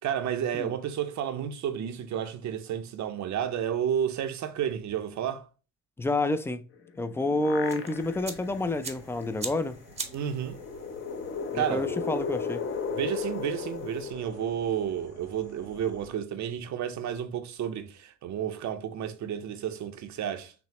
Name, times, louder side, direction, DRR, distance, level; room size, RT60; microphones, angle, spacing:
voice 1, 0.0-5.5 10.1-10.6 11.5-11.9 13.0-20.5, right 9 dB, 65° right, 0.7 m, -31 dB
voice 2, 6.0-6.6 7.0-9.8 11.5-12.6, left 2 dB, 10° left, 0.3 m, -29 dB
sound 1, 6.8-8.4 8.8-8.9 10.2-15.0, left 5 dB, 45° left, 0.7 m, -35 dB
sound 2, 7.6-14.1, right 4 dB, 20° right, 0.7 m, -44 dB
sound 3, 7.9-16.1, left 2 dB, 85° left, 1.4 m, -52 dB
5.9 x 2.0 x 2.9 m
cardioid pair, 90°, 30 cm